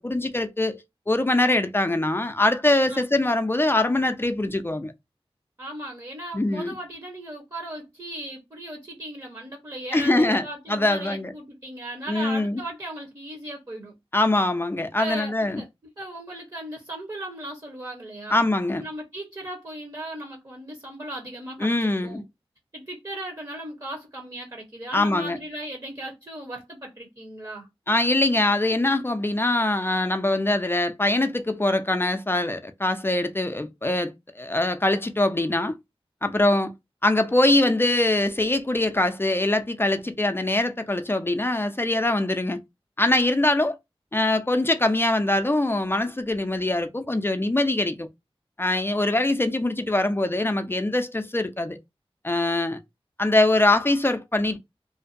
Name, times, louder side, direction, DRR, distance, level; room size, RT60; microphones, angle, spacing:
voice 1, 0.0-4.9 6.3-6.7 9.9-11.3 12.1-12.6 14.1-15.6 18.3-18.8 21.6-22.2 24.9-25.4 27.9-35.7 36.2-36.7 37.0-42.6 43.0-43.8 44.1-48.1 48.6-51.8 52.2-52.8 53.2-54.6, left 2 dB, 20° left, 0.4 m, -23 dB
voice 2, 5.6-13.9 15.0-15.7 16.0-18.4 18.8-22.2 22.7-27.7, right 1 dB, 35° right, 0.8 m, -37 dB
2.5 x 2.1 x 2.5 m
wide cardioid pair, 60°, 10 cm